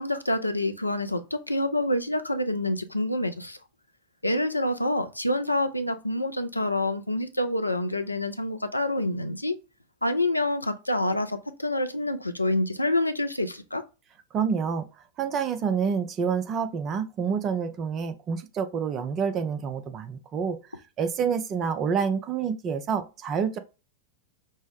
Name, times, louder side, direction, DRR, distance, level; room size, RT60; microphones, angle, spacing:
voice 1, 0.0-3.6 4.2-9.5 10.0-13.8, left 1 dB, 85° left, 0.4 m, -27 dB
voice 2, 14.3-14.9 15.2-20.6 21.0-23.6, right 6 dB, 30° right, 0.5 m, -28 dB
5.3 x 2.0 x 3.5 m
figure-of-eight pair, 90°, 0 cm